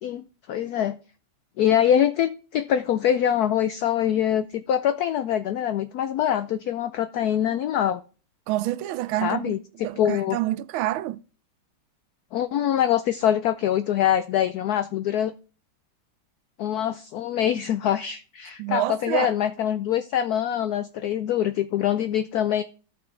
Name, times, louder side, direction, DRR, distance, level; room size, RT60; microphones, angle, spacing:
voice 1, 0.0-1.0 1.6-8.0 9.2-10.4 12.3-15.3 16.6-22.6, left 10 dB, 85° left, 0.8 m, -24 dB
voice 2, 8.5-9.5 9.8-11.2 18.6-19.3, right 15 dB, 90° right, 1.4 m, -27 dB
13.0 x 5.9 x 3.2 m
omnidirectional pair, 2.2 m